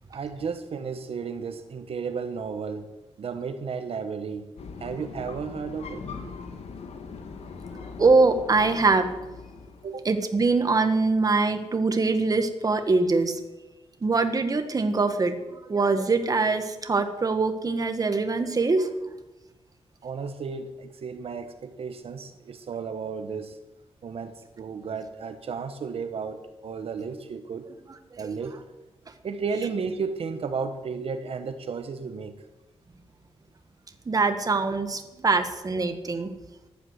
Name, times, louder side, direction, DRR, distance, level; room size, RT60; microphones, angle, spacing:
voice 1, 0.1-2.9 3.2-4.5 4.8-6.3 9.8-10.1 20.0-23.6 24.0-27.7 28.2-28.6 29.2-32.3, right 5 dB, 65° right, 8 dB, 1.1 m, -33 dB
sound 1, 4.6-10.2, left 5 dB, 80° left, 1.7 m, -41 dB
voice 2, 8.0-9.1 10.0-13.4 14.0-15.3 15.6-18.9 34.1-36.3, right 3 dB, 35° right, 7 dB, 1.5 m, -23 dB
14.5 x 11.0 x 8.0 m, 1.0 s
wide cardioid pair, 120°, 11 cm